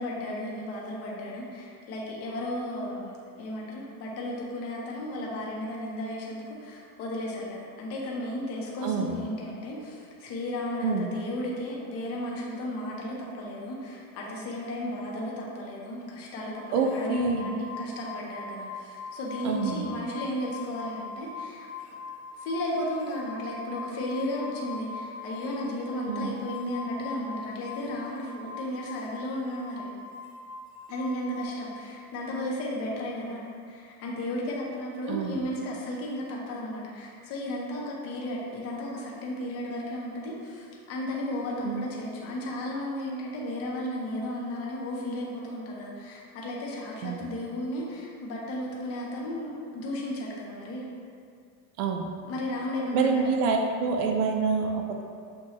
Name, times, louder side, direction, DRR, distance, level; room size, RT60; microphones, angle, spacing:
voice 1, 0.0-3.1 3.4-21.7 22.4-29.9 30.9-50.8 52.3-53.3, left 1 dB, 30° left, -3 dB, 0.7 m, -34 dB
voice 2, 8.8-9.1 10.8-11.1 16.7-17.6 19.4-19.9 26.1-26.4 35.1-35.4 41.6-41.9 47.0-47.3 51.8-52.1 52.9-55.0, right 4 dB, 70° right, 3 dB, 0.5 m, -27 dB
sound 1, 16.5-31.4, left 4 dB, 60° left, 0.8 m, -41 dB
6.4 x 2.2 x 2.9 m, 2.3 s
supercardioid pair, 150°, 48 cm